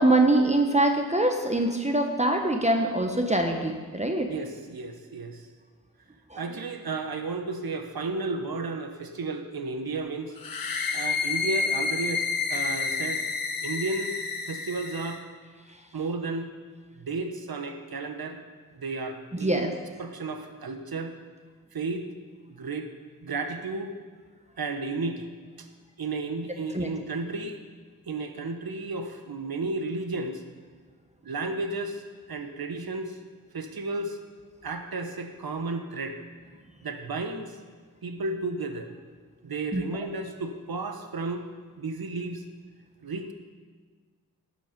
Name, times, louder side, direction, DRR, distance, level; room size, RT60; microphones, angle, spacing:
voice 1, 0.0-4.3 6.3-6.4 19.4-19.7 26.7-26.9 39.7-39.8, right 2 dB, 20° right, 3 dB, 1.0 m, -23 dB
voice 2, 4.3-5.5 6.4-10.3 10.9-13.2 13.6-14.1 14.5-15.2 15.9-16.5 17.0-18.4 18.7-19.7 20.0-21.1 21.7-22.1 22.5-22.9 23.2-23.9 24.6-25.3 25.6-25.7 26.0-27.6 28.1-30.4 31.2-32.0 32.3-33.2 33.5-34.2 34.6-36.2 36.8-37.6 38.0-38.9 39.4-41.5 41.8-42.4 43.0-43.3, right 3 dB, 75° right, 7 dB, 1.1 m, -33 dB
sound 1, 10.4-15.2, left 4 dB, 70° left, 1.2 m, -29 dB
12.5 x 8.5 x 5.2 m, 1.5 s
cardioid pair, 45°, 36 cm